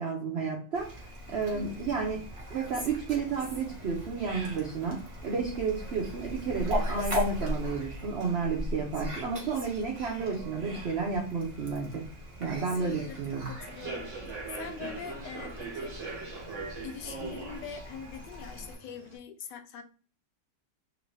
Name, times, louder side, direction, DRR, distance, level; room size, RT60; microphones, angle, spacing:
voice 1, 0.0-2.2 2.5-12.1 12.4-13.5, right 5 dB, 85° right, 0 dB, 0.5 m, -32 dB
Fowl, 0.7-18.7, equal, 30° right, 0.6 m, -38 dB
voice 2, 1.5-1.9 12.7-16.4 16.8-19.8, left 7 dB, 80° left, 6 dB, 1.2 m, -43 dB
Human voice / Subway metro underground, 13.6-19.1, right 4 dB, 55° right, 0.9 m, -41 dB
3.0 x 2.6 x 3.1 m, 0.39 s
omnidirectional pair, 1.9 m